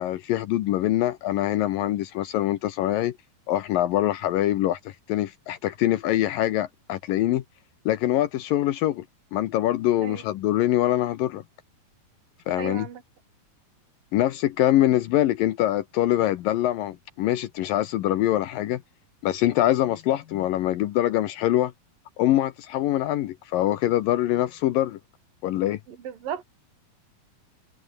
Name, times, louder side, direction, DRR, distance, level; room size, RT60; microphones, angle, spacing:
voice 1, 0.0-3.2 3.5-7.4 7.9-9.0 9.3-11.4 12.5-12.9 14.1-18.8 19.2-21.7 22.2-25.0 25.4-25.8, left 13 dB, 75° left, 2.6 m, -24 dB
voice 2, 12.5-13.0 25.9-26.4, right 9 dB, 65° right, 4.6 m, -35 dB
omnidirectional pair, 4.2 m